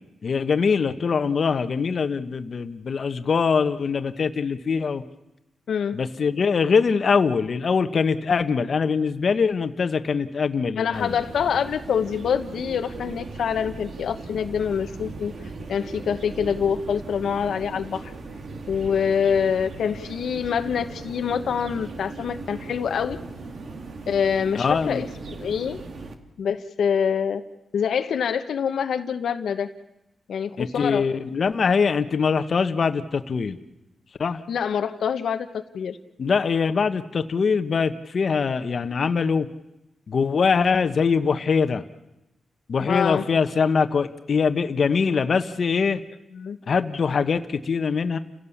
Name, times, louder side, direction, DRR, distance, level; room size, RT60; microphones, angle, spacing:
voice 1, 0.2-5.0 5.9-11.2 24.5-25.1 30.6-33.6 34.2-34.4 36.2-39.5 40.1-41.8 42.7-46.0 46.7-48.2, left 5 dB, 55° left, 9 dB, 1.2 m, -23 dB
voice 2, 10.8-15.3 15.7-18.1 18.7-23.2 24.1-25.8 26.4-27.4 27.7-29.7 30.3-31.0 34.5-36.0 42.9-43.2 46.4-46.6, left 7 dB, 80° left, 7 dB, 1.0 m, -25 dB
sound 1, 10.9-26.1, right 3 dB, 60° right, 2.1 m, -38 dB
30.0 x 16.5 x 7.2 m, 0.95 s
cardioid pair, 95°, 0 cm